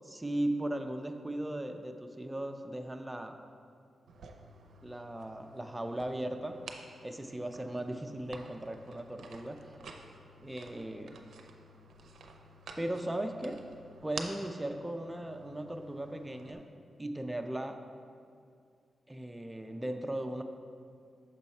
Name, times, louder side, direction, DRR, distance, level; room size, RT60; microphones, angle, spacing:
voice 1, 0.0-3.4 4.8-6.6 7.0-9.8 10.4-11.2 12.8-13.6 14.0-16.7 17.0-17.8 19.1-20.4, right 1 dB, 10° right, 5 dB, 0.4 m, -37 dB
sound 1, 4.1-16.5, right 4 dB, 85° right, 0.5 m, -51 dB
6.3 x 4.4 x 4.2 m, 2.3 s
cardioid pair, 90°, 0 cm